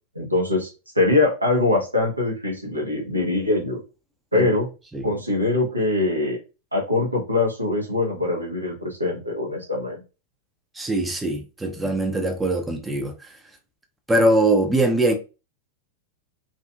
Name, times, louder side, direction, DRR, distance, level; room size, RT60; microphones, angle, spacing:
voice 1, 0.1-0.7 0.9-3.8 4.3-4.7 5.0-6.4 6.7-10.0, left 2 dB, 85° right, 0.8 m, -23 dB
voice 2, 10.8-13.1 14.1-15.1, right 1 dB, 10° right, 0.5 m, -22 dB
2.6 x 2.5 x 2.3 m
figure-of-eight pair, 90°, 0 cm